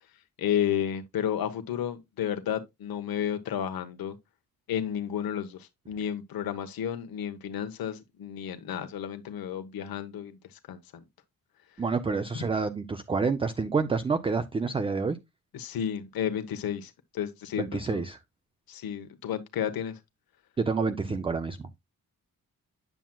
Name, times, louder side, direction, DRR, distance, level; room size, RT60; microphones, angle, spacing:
voice 1, 0.4-4.2 4.7-11.0 15.5-18.0 18.7-20.0, left 9 dB, 90° left, 1.0 m, -32 dB
voice 2, 11.8-15.2 17.6-18.2 20.6-21.7, right 4 dB, 15° right, 0.3 m, -28 dB
9.0 x 7.3 x 2.2 m
wide cardioid pair, 175°, 35 cm